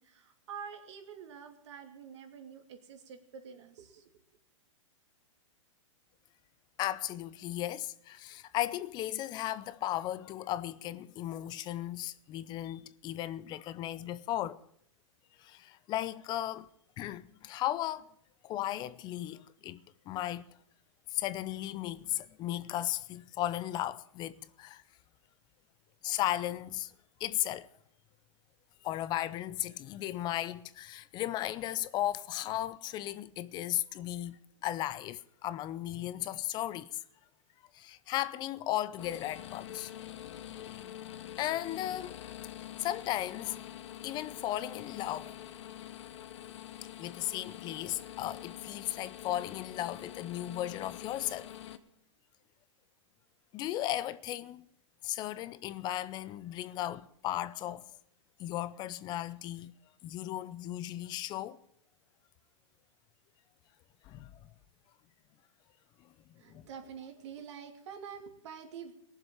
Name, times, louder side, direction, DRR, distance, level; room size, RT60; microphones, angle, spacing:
voice 1, 0.0-4.0 66.4-68.9, right 7 dB, 60° right, 2.7 m, -47 dB
voice 2, 6.8-14.6 15.4-16.7 17.0-18.1 18.4-20.4 21.1-24.8 26.0-26.9 27.2-27.7 28.8-37.0 37.7-39.9 41.4-42.2 42.6-43.6 44.0-45.3 47.0-51.5 53.5-54.7 55.0-57.8 58.4-59.7 60.0-61.6 64.0-64.4 66.3-66.6, left 13 dB, 25° left, 0.6 m, -36 dB
sound 1, 39.0-51.8, left 11 dB, 65° left, 1.1 m, -46 dB
18.5 x 7.4 x 8.9 m
hypercardioid pair, 135°, 17 cm